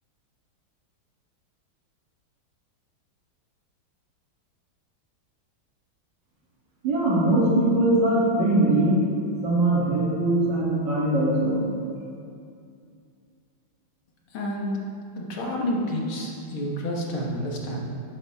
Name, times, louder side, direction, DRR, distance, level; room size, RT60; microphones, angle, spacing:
voice 1, 6.8-9.1 9.4-11.6, right 1 dB, 60° right, -7 dB, 3.3 m, -21 dB
voice 2, 14.3-14.7 15.1-17.8, equal, 80° left, -2 dB, 2.3 m, -29 dB
12.5 x 8.9 x 3.6 m, 2.4 s
omnidirectional pair, 2.3 m